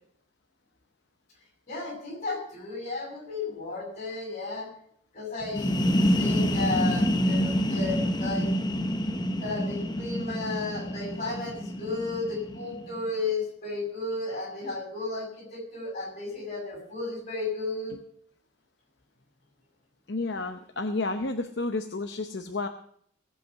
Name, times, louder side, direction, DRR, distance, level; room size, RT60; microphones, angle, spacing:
voice 1, 1.7-4.7 5.1-8.5 9.4-17.9, left 3 dB, 35° left, 0 dB, 7.0 m, -34 dB
sound 1, 5.4-13.0, equal, 20° left, 0.8 m, -27 dB
voice 2, 20.1-22.7, left 3 dB, 60° left, 6 dB, 0.8 m, -31 dB
18.0 x 8.0 x 6.0 m, 0.64 s
head